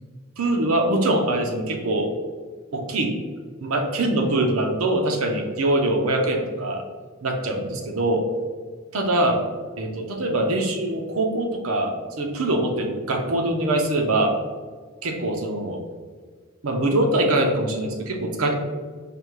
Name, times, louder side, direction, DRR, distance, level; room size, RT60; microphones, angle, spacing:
voice 1, 0.4-2.1 2.7-3.2 3.6-6.8 7.2-8.2 8.9-9.4 9.8-14.4 15.0-15.8 16.6-18.5, right 1 dB, 75° right, 3 dB, 0.7 m, -23 dB
5.1 x 2.2 x 4.6 m, 1.5 s
head